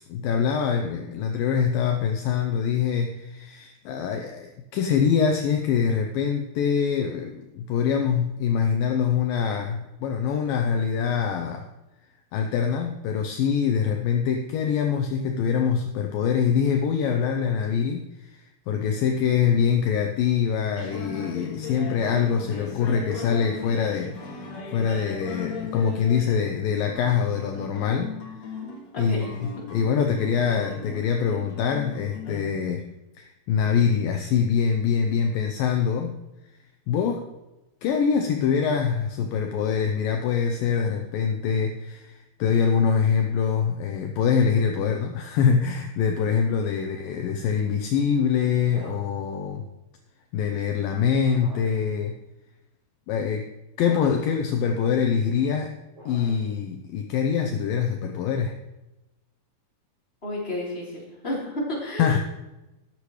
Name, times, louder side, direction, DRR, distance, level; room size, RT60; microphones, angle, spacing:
voice 1, 0.1-11.7 12.3-28.2 29.0-32.9 33.2-36.2 36.9-37.3 37.8-49.7 50.3-52.2 53.1-53.5 53.8-55.8 56.1-58.6 62.0-62.2, left 7 dB, 80° left, 4 dB, 2.1 m, -24 dB
sound 1, 20.8-32.4, left 4 dB, 50° left, 2.5 m, -38 dB
voice 2, 28.9-29.3 46.7-46.8 60.2-62.1, left 1 dB, 15° left, -6 dB, 3.4 m, -31 dB
sound 2, 48.7-49.2 51.2-51.9 53.8-54.4 55.9-56.6, right 1 dB, 40° right, 4.8 m, -45 dB
13.5 x 10.5 x 3.2 m, 0.99 s
omnidirectional pair, 4.9 m